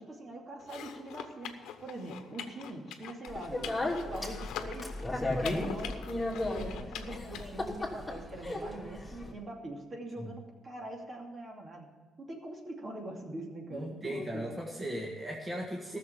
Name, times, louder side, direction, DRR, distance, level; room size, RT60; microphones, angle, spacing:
voice 1, 0.0-1.5 1.8-3.8 4.1-4.9 5.5-6.0 6.3-11.8 12.2-14.4, right 1 dB, 40° right, 1 dB, 2.6 m, -43 dB
sound 1, 0.6-7.4, left 9 dB, 85° left, 0.9 m, -44 dB
Speech, 3.3-9.3, left 1 dB, 10° left, 3.1 m, -35 dB
voice 2, 13.7-16.0, right 1 dB, 20° right, -1 dB, 1.7 m, -37 dB
13.5 x 6.9 x 8.5 m, 1.3 s
cardioid pair, 90°, 0 cm